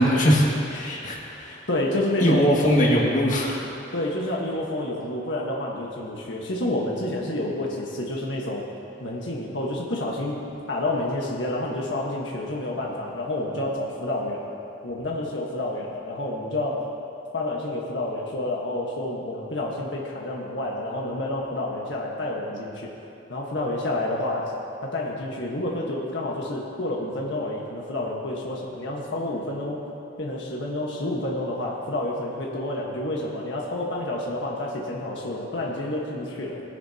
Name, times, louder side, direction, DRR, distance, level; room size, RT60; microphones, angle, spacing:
voice 1, 0.0-1.6 2.2-3.6, equal, 45° left, -4 dB, 2.1 m, -21 dB
voice 2, 1.7-2.5 3.9-8.6 9.0-10.4 10.7-14.5 14.8-16.9 17.3-22.9 23.3-24.5 24.8-29.8 30.2-36.6, left 1 dB, 85° left, -3 dB, 1.4 m, -29 dB
19.5 x 10.0 x 2.9 m, 2.7 s
head